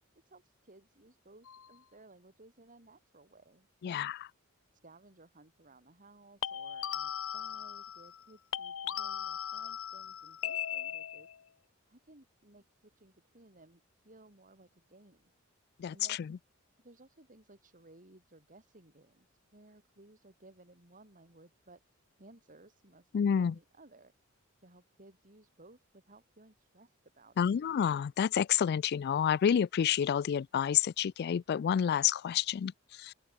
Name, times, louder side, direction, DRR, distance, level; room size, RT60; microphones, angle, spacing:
voice 1, 0.1-4.1 4.8-11.5 11.9-15.3 15.9-16.3 16.8-24.1 24.6-27.5, right 2 dB, 40° right, 4.5 m, -59 dB
sound 1, 1.5-1.7 6.4-8.3 8.5-11.4, left 9 dB, 70° left, 0.7 m, -38 dB
voice 2, 3.8-4.2 15.8-16.2 23.1-23.5 27.4-33.1, left 8 dB, 50° left, 0.3 m, -29 dB
open air
head